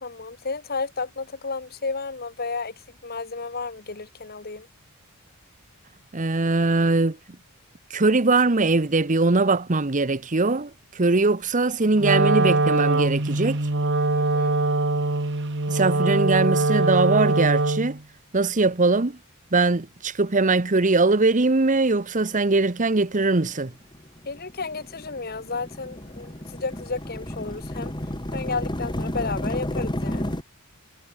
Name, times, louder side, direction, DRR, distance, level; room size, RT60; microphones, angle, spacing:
voice 1, 0.0-4.7 14.1-14.6 24.2-27.9 28.3-30.4, left 4 dB, 45° left, 1.7 m, -32 dB
voice 2, 6.1-7.2 7.9-13.6 15.7-18.0 18.3-19.2 19.5-23.7, right 3 dB, 35° right, 1.0 m, -21 dB
Wind instrument woodwind instrument, 12.0-18.0, right 2 dB, 55° right, 1.9 m, -22 dB
sound 1, 23.5-30.4, left 1 dB, 20° left, 2.7 m, -32 dB
head